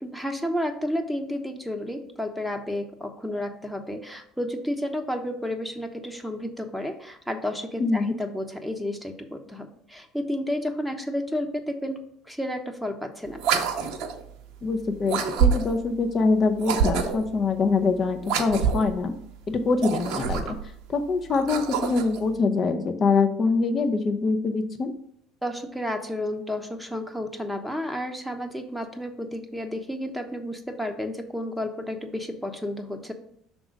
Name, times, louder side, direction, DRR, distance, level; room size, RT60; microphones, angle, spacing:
voice 1, 0.0-12.0 12.3-13.6 25.4-33.1, left 1 dB, ahead, 4 dB, 1.0 m, -31 dB
voice 2, 7.8-8.1 14.6-19.1 19.5-20.5 20.9-24.9, left 4 dB, 40° left, 6 dB, 0.8 m, -24 dB
sound 1, 13.4-14.2 15.1-15.9 16.6-17.3 18.2-18.9 19.7-20.7 21.3-22.2, right 7 dB, 65° right, 0.8 m, -26 dB
6.0 x 3.7 x 5.2 m, 0.69 s
hypercardioid pair, 65°, 0 cm